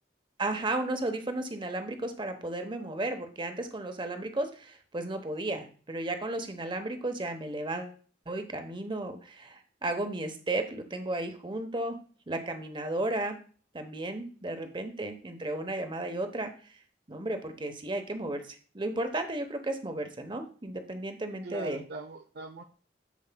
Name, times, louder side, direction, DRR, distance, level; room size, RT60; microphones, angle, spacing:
voice 1, 0.4-8.0 8.3-12.0 12.3-13.4 13.7-16.5 17.1-21.8, right 2 dB, 30° right, 6 dB, 0.9 m, -34 dB
voice 2, 21.4-22.6, right 2 dB, 65° right, 7 dB, 0.5 m, -41 dB
13.5 x 4.7 x 2.2 m, 0.40 s
head